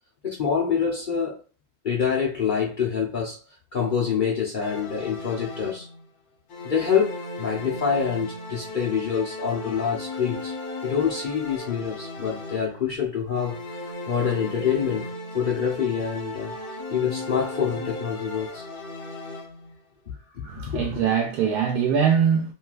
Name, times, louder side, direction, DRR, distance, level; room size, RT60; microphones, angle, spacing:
voice 1, 0.2-1.4 1.8-3.4 3.7-5.9 6.6-10.5 10.8-13.6 14.1-16.5 16.9-18.6 20.3-20.4 20.7-21.0, left 7 dB, 45° left, 0.6 m, -26 dB
sound 1, 4.6-6.1 6.5-12.9 13.3-19.8, left 1 dB, 70° left, 1.3 m, -36 dB
voice 2, 20.4-22.5, right 7 dB, 80° right, 1.1 m, -22 dB
3.2 x 2.7 x 2.3 m
omnidirectional pair, 1.7 m